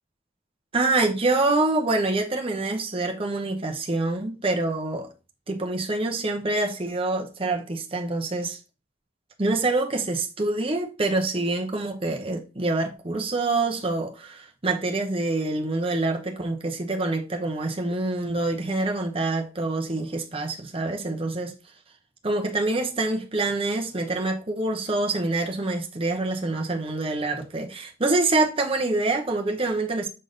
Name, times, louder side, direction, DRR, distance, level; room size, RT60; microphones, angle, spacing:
voice 1, 0.7-5.1 5.5-8.6 9.4-21.5 22.2-30.1, right 2 dB, 30° right, 0.9 m, -26 dB
6.5 x 3.8 x 3.8 m
head